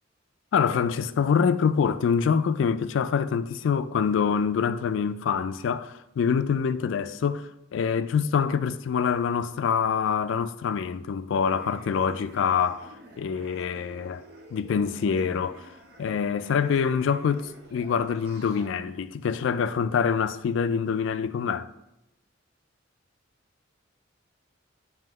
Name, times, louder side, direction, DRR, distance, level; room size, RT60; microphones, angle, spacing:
voice 1, 0.5-14.2 14.5-15.7 16.0-21.7, left 6 dB, 70° left, 0.3 m, -25 dB
sound 1, 11.5-18.7, right 1 dB, 55° right, 0.8 m, -49 dB
7.5 x 2.8 x 5.3 m
head